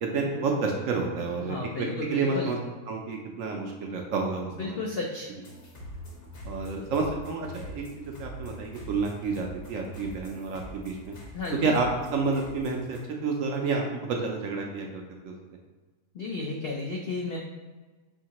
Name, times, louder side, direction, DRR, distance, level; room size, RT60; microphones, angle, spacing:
voice 1, 0.0-2.6 2.9-4.8 5.3-5.4 6.4-11.2 11.6-15.3, right 4 dB, 65° right, 1 dB, 0.8 m, -30 dB
voice 2, 1.5-2.5 4.6-5.3 11.3-11.8 16.1-17.4, left 3 dB, 85° left, -1 dB, 0.5 m, -33 dB
sound 1, 5.4-13.0, left 1 dB, 45° left, 0.9 m, -43 dB
5.7 x 2.7 x 2.8 m, 1.3 s
omnidirectional pair, 1.7 m